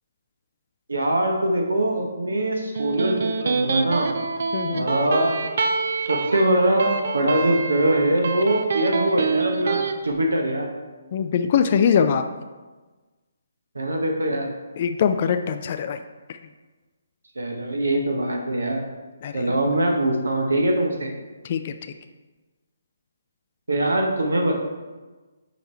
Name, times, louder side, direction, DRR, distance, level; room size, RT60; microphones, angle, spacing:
voice 1, 0.9-4.1 4.7-5.4 6.1-10.7 13.7-14.5 17.4-18.8 19.3-21.1 23.7-24.5, right 1 dB, 75° right, 2 dB, 0.9 m, -22 dB
Electric guitar, 2.5-9.9, right 4 dB, 55° right, 0.5 m, -26 dB
voice 2, 4.5-4.9 11.1-12.2 14.8-16.0 19.2-19.5 21.4-21.7, left 7 dB, 40° left, 8 dB, 0.4 m, -22 dB
5.6 x 4.4 x 4.3 m, 1.3 s
figure-of-eight pair, 140°, 0 cm